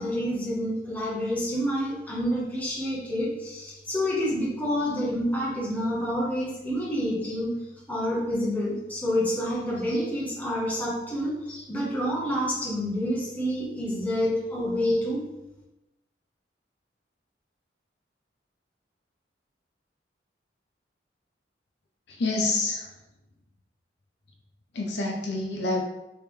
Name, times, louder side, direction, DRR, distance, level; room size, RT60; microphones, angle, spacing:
voice 1, 0.0-7.6 7.9-15.2, equal, 10° left, -6 dB, 1.0 m, -28 dB
voice 2, 22.2-22.9 24.7-25.8, left 2 dB, 65° left, 0 dB, 0.6 m, -27 dB
3.5 x 3.3 x 3.1 m, 0.96 s
head